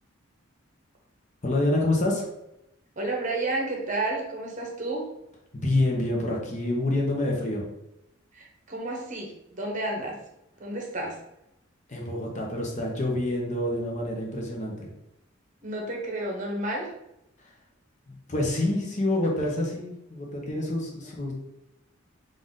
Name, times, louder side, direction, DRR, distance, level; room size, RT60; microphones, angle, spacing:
voice 1, 1.4-2.3 5.5-7.6 11.9-14.9 17.4-17.5 18.1-21.3, left 1 dB, 35° left, -1 dB, 0.8 m, -27 dB
voice 2, 3.0-5.1 8.3-10.2 10.6-11.2 15.6-16.9, right 2 dB, 40° right, 0 dB, 0.9 m, -31 dB
3.8 x 2.5 x 3.7 m, 0.84 s
head